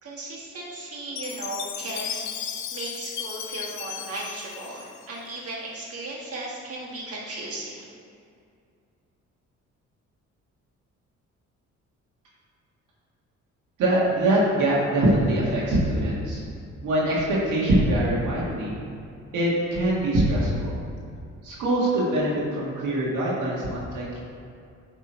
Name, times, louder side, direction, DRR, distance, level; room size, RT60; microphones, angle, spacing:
voice 1, 0.0-2.3 2.7-7.9, right 2 dB, 50° right, -5 dB, 1.8 m, -36 dB
Chime, 1.2-5.5, left 8 dB, 70° left, 0.6 m, -35 dB
voice 2, 13.8-16.4 16.8-18.8 19.3-20.7 21.4-24.2, right 1 dB, 80° right, -6 dB, 1.8 m, -23 dB
10.5 x 3.7 x 4.4 m, 2.4 s
cardioid pair, 90°, 30 cm